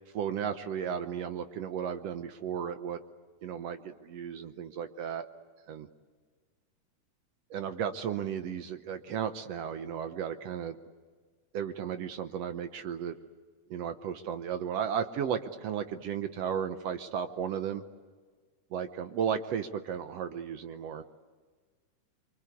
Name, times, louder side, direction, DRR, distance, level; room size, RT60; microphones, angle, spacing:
voice 1, 0.1-3.0 3.4-5.3 5.7-5.9 7.5-10.8 11.5-13.1 13.7-17.8 18.7-21.0, right 8 dB, 75° right, 9 dB, 1.5 m, -34 dB
26.0 x 24.0 x 8.3 m, 1.5 s
omnidirectional pair, 3.9 m